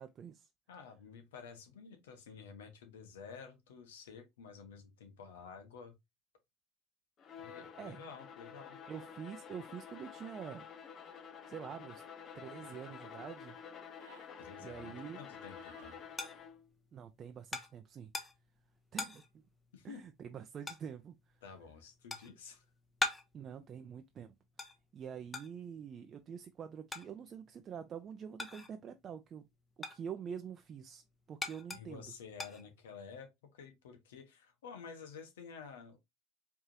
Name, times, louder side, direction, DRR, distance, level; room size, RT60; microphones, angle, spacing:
voice 1, 0.0-0.5 7.8-8.0 8.9-10.6 11.5-12.0 12.3-13.6 14.6-15.2 16.9-18.1 18.9-19.2 19.8-21.4 23.3-24.3 24.9-29.5 29.8-32.1, right 7 dB, 40° right, 0.6 m, -46 dB
voice 2, 0.7-5.9 7.4-8.8 14.4-16.0 19.7-20.0 21.4-22.6 31.7-36.0, left 6 dB, 85° left, 1.4 m, -51 dB
Bowed string instrument, 7.2-16.7, left 7 dB, 45° left, 1.0 m, -50 dB
sound 1, 10.9-11.2 12.5-12.9 13.8-14.3 15.4-16.0, right 9 dB, 80° right, 0.8 m, -63 dB
sound 2, 15.3-29.0 29.3-33.2, left 3 dB, 15° left, 1.0 m, -44 dB
4.8 x 3.5 x 2.8 m
hypercardioid pair, 80°, 0 cm